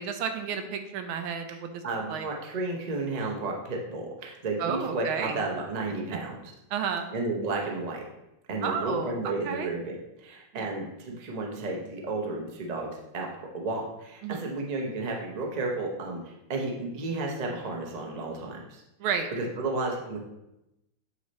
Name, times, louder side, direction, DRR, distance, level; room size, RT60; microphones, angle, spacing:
voice 1, 0.0-1.7 2.1-2.3 4.6-5.4 6.7-7.1 8.6-9.7 10.5-10.7 14.2-14.5 19.0-19.3, right 7 dB, 75° right, 7 dB, 1.5 m, -31 dB
voice 2, 1.8-6.5 7.1-8.1 8.5-13.3 13.5-18.8 19.3-20.2, right 2 dB, 55° right, 0 dB, 0.4 m, -32 dB
8.3 x 3.2 x 4.1 m, 0.88 s
omnidirectional pair, 2.3 m